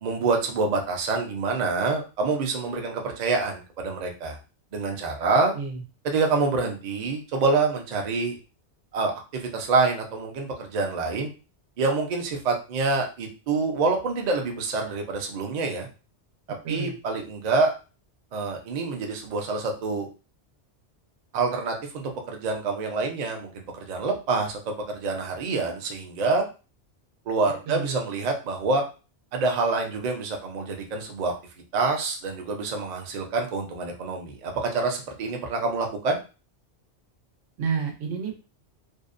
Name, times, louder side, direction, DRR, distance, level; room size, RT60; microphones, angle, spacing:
voice 1, 0.0-4.4 4.7-5.5 6.0-8.4 8.9-11.3 11.8-15.9 16.7-17.7 18.3-20.1 21.3-26.4 27.3-28.8 29.3-31.3 31.7-36.2, right 3 dB, 50° right, 3 dB, 0.5 m, -26 dB
voice 2, 27.7-28.0 37.6-38.3, right 6 dB, 90° right, 2 dB, 1.0 m, -29 dB
2.6 x 2.0 x 2.4 m, 0.32 s
omnidirectional pair, 1.2 m